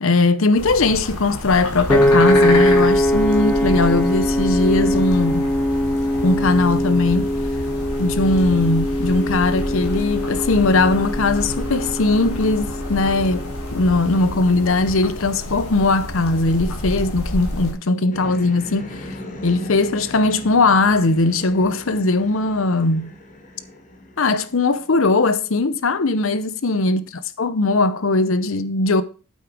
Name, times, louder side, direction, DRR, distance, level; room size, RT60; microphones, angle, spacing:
voice 1, 0.0-5.5 6.2-7.3 8.0-19.1 19.4-23.1 24.2-27.0 27.4-29.0, left 3 dB, 60° left, 0.7 m, -19 dB
sound 1, 0.5-17.7, left 1 dB, 85° left, 3.4 m, -29 dB
Piano, 1.9-14.1, left 1 dB, 5° left, 0.8 m, -21 dB
sound 2, 18.1-25.1, left 1 dB, 35° left, 1.9 m, -37 dB
8.7 x 8.2 x 4.8 m
head